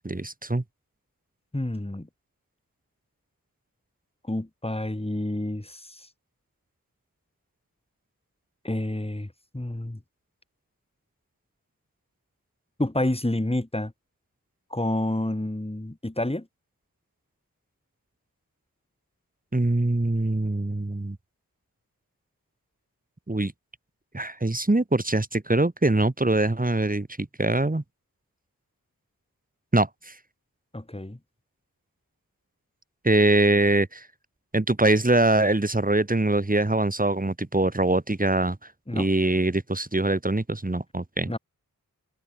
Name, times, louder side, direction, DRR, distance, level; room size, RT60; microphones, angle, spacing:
voice 1, 0.0-0.6 19.5-21.2 23.3-23.5 24.1-27.8 29.7-30.1 33.0-34.0 34.5-38.6 38.9-41.3, right 2 dB, 25° right, 3.9 m, -23 dB
voice 2, 1.5-2.1 4.3-6.1 8.6-10.0 12.8-13.9 14.7-16.5 30.7-31.2 38.9-39.1 41.3-41.4, left 1 dB, 15° left, 6.1 m, -29 dB
wide cardioid pair, 75°, 35 cm